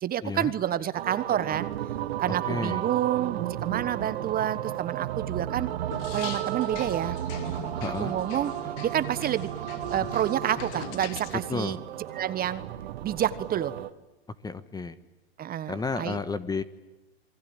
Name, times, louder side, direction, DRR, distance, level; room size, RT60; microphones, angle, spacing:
voice 1, 0.0-1.7 2.2-5.7 6.1-7.2 8.0-8.5 8.8-9.5 9.9-11.8 12.1-12.6 13.0-13.7 15.4-16.2, right 11 dB, 25° right, 14 dB, 1.3 m, -28 dB
sound 1, 0.9-13.9, right 12 dB, 70° right, 1.6 m, -33 dB
voice 2, 2.5-2.8 7.8-8.1 11.5-11.8 14.4-15.0 15.7-16.6, left 4 dB, 10° left, 14 dB, 1.3 m, -31 dB
sound 2, 5.9-11.4, left 9 dB, 45° left, 2.6 m, -42 dB
28.0 x 23.5 x 8.9 m, 1.1 s
hypercardioid pair, 105°, 33 cm